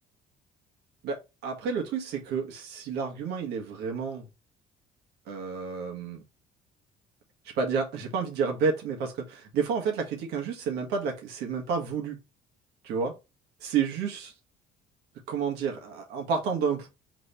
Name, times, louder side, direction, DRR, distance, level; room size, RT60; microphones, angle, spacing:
voice 1, 1.0-4.3 5.3-6.2 7.5-12.2 12.8-13.1 13.6-14.3 15.3-16.9, right 5 dB, 75° right, 1.4 m, -30 dB
3.4 x 3.4 x 4.1 m
cardioid pair, 145°, 17 cm